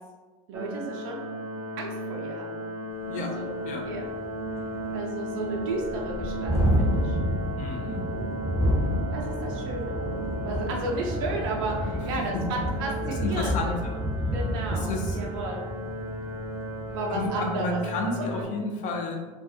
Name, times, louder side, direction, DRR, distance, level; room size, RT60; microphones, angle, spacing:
sound 1, 0.5-18.4, right 1 dB, 15° right, 0.5 m, -35 dB
voice 1, 0.5-1.3 1.8-2.7 3.1-4.1 4.9-7.2 9.1-10.0 10.4-13.8 14.3-15.6 16.9-17.8, right 2 dB, 70° right, 0 dB, 0.4 m, -34 dB
Thunderstorm, 3.0-3.1 3.5-3.6 3.9-17.5, equal, 15° left, 1.2 m, -30 dB
voice 2, 7.6-8.1 12.3-12.4 13.1-14.0 14.7-15.2 17.1-19.2, left 3 dB, 50° left, 2 dB, 0.5 m, -31 dB
2.3 x 2.2 x 2.5 m, 1.3 s
hypercardioid pair, 70°, 16 cm